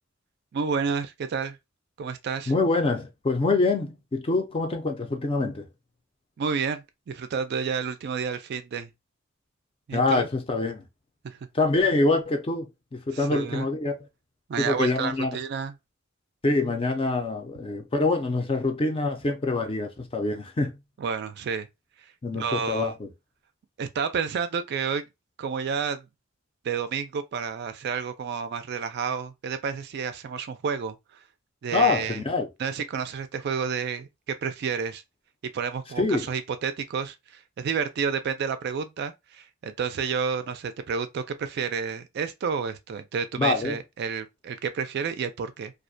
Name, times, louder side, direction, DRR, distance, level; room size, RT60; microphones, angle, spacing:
voice 1, 0.5-1.6 2.0-2.5 6.4-8.9 9.9-10.3 11.2-11.4 13.1-13.7 14.5-15.7 21.0-21.7 22.3-22.9 23.8-25.1 25.4-26.0 26.6-31.0 31.6-32.2 32.6-35.0 35.5-45.7, right 6 dB, 55° right, 0.3 m, -30 dB
voice 2, 2.5-5.6 9.9-10.8 11.5-14.0 14.6-15.4 16.4-20.7 22.2-23.1 31.7-32.5 36.0-36.3 43.4-43.8, left 3 dB, 25° left, 0.4 m, -25 dB
2.4 x 2.1 x 2.5 m
head